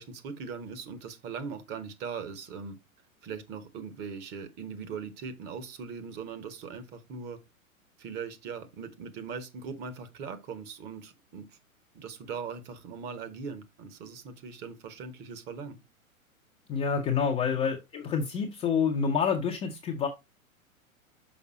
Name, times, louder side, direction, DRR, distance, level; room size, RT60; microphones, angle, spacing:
voice 1, 0.0-2.8 3.2-7.4 8.0-11.5 11.9-15.8 17.5-17.6, right 5 dB, 25° right, 1.0 m, -40 dB
voice 2, 16.7-20.1, left 6 dB, 15° left, 0.6 m, -28 dB
6.1 x 5.1 x 4.0 m
figure-of-eight pair, 105°, 42 cm